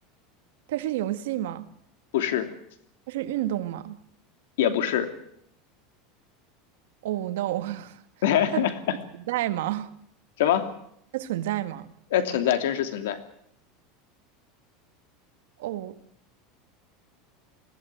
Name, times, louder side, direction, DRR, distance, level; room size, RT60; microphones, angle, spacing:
voice 1, 0.7-1.7 3.1-4.0 7.0-8.0 8.5-8.6 9.3-9.9 11.1-11.9 15.6-16.0, right 14 dB, 80° right, 1.8 m, -29 dB
voice 2, 2.1-2.5 4.6-5.1 8.2-8.7 10.4-10.7 12.1-13.2, left 10 dB, 85° left, 2.9 m, -23 dB
21.5 x 16.0 x 9.3 m
supercardioid pair, 170°, 0 cm